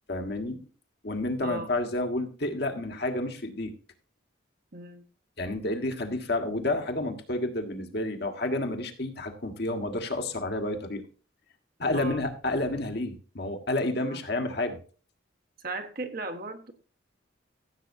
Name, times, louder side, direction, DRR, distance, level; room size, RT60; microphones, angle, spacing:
voice 1, 0.1-0.7 1.0-3.7 5.4-11.0 11.8-14.8, left 2 dB, 55° left, 5 dB, 1.6 m, -30 dB
voice 2, 4.7-5.0 11.9-12.2 14.1-14.2 15.6-16.7, right 3 dB, 50° right, 5 dB, 1.4 m, -36 dB
15.5 x 7.9 x 2.7 m, 0.38 s
head